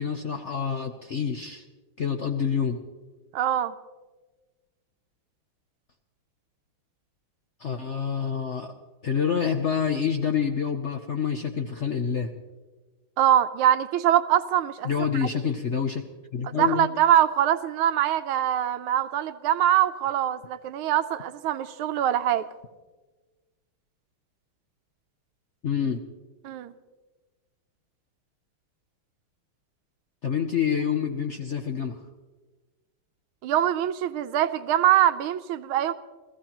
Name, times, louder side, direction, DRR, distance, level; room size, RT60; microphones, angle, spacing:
voice 1, 0.0-1.6 2.0-2.8 7.6-8.7 9.0-12.3 14.8-16.0 16.3-16.9 25.6-26.0 30.2-32.0, left 7 dB, 75° left, 5 dB, 0.6 m, -27 dB
voice 2, 3.3-3.7 13.2-15.3 16.4-22.5 26.4-26.7 33.4-35.9, right 11 dB, 85° right, 11 dB, 1.5 m, -23 dB
30.0 x 15.0 x 3.0 m, 1.3 s
omnidirectional pair, 2.3 m